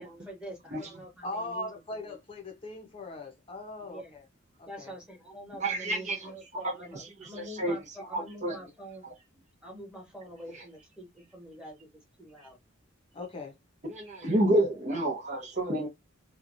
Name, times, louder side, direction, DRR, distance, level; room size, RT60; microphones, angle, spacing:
voice 1, 0.0-1.7 2.0-2.2 3.9-4.2 4.7-9.1 9.6-12.6, right 1 dB, 5° right, 1.3 m, -46 dB
voice 2, 1.2-4.2 4.6-4.9 13.1-13.5, left 2 dB, 25° left, 0.8 m, -39 dB
voice 3, 5.6-7.8 8.1-8.6 10.5-10.6 13.8-15.9, right 1 dB, 35° right, 0.8 m, -30 dB
2.9 x 2.3 x 2.5 m
head